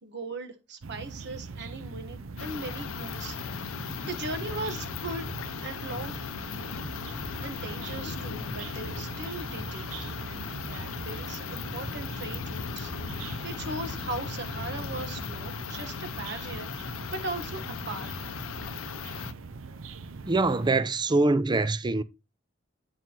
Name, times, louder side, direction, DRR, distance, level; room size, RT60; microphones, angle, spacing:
voice 1, 0.0-3.4 4.0-5.3 5.6-6.1 7.4-9.8 10.2-16.7 17.1-18.1, right 2 dB, 60° right, 1.1 m, -38 dB
sound 1, 0.8-20.7, right 4 dB, 75° right, 0.6 m, -42 dB
sound 2, 2.4-19.3, left 6 dB, 85° left, 0.6 m, -37 dB
voice 2, 20.3-22.0, right 3 dB, 20° right, 0.4 m, -24 dB
9.3 x 6.1 x 2.9 m
head